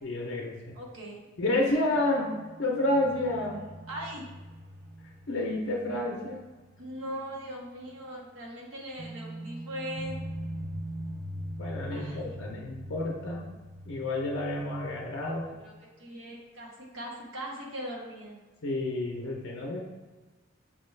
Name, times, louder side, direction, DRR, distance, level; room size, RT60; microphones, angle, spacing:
voice 1, 0.0-0.5 1.4-2.3 2.6-3.6 5.3-6.4 11.6-13.5 13.9-15.5 18.6-19.8, left 1 dB, 55° left, -1 dB, 0.5 m, -29 dB
voice 2, 0.7-1.2 3.9-4.3 6.8-10.2 11.9-12.3 15.5-18.4, equal, 75° right, -2 dB, 0.9 m, -40 dB
sound 1, 2.0-7.4 7.7-7.8 9.0-15.5, right 1 dB, 45° right, 0.5 m, -42 dB
5.7 x 2.3 x 3.2 m, 1.2 s
head